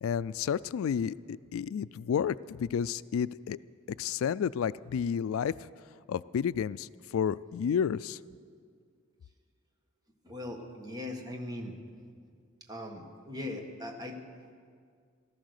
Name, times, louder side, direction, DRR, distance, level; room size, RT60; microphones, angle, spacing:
voice 1, 0.0-3.6 4.0-5.5 6.1-6.9 7.1-8.2, left 7 dB, 80° left, 17 dB, 0.3 m, -31 dB
voice 2, 10.2-11.7 12.7-14.2, left 1 dB, 20° right, 3 dB, 1.4 m, -39 dB
15.5 x 14.0 x 6.5 m, 2.1 s
head